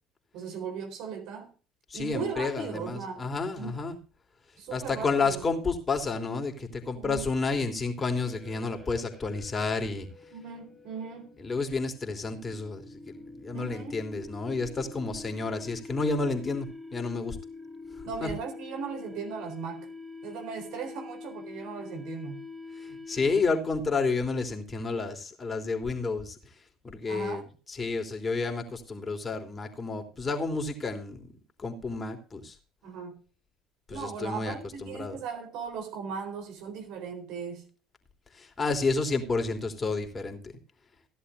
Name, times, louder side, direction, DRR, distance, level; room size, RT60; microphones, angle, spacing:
voice 1, 0.3-1.5 1.9-3.3 3.6-3.8 4.6-5.4 6.9-7.3 10.3-11.4 13.5-14.0 18.0-19.9 20.2-22.4 27.1-27.5 32.8-33.2 33.9-37.6, right 5 dB, 65° right, 4.0 m, -38 dB
voice 2, 1.9-4.0 4.7-10.1 11.4-17.4 18.2-18.3 22.8-26.4 26.8-31.3 31.6-32.5 33.9-34.6 34.8-35.2 38.3-40.6, left 3 dB, 30° left, 3.2 m, -30 dB
sound 1, 8.0-23.9, left 3 dB, 10° right, 3.2 m, -45 dB
16.5 x 11.0 x 2.6 m
hypercardioid pair, 70°, 0 cm